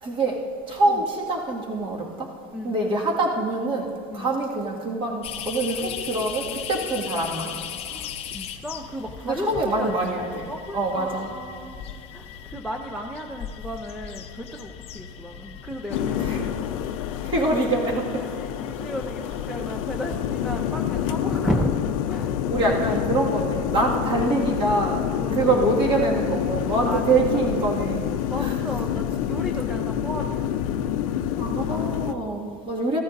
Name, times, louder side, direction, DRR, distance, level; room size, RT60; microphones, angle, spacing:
voice 1, 0.0-2.3 2.6-7.6 9.2-10.5 10.7-11.3 16.2-16.5 17.2-18.2 22.5-25.1 25.3-28.0 28.4-28.5 31.4-33.0, right 2 dB, 30° right, -1 dB, 1.9 m, -25 dB
sound 1, 5.2-22.1 22.7-22.8 23.2-23.3, left 8 dB, 35° left, 0.7 m, -39 dB
voice 2, 7.9-10.1 10.5-11.8 12.1-17.0 18.2-21.7 22.0-22.8 23.9-24.2 25.2-25.7 26.9-27.2 28.3-30.5 31.0-31.2 31.7-32.0, equal, ahead, 2 dB, 0.5 m, -34 dB
sound 2, 15.9-32.1, left 10 dB, 85° left, 0.6 m, -27 dB
15.5 x 13.5 x 2.6 m, 2.4 s
supercardioid pair, 145°, 17 cm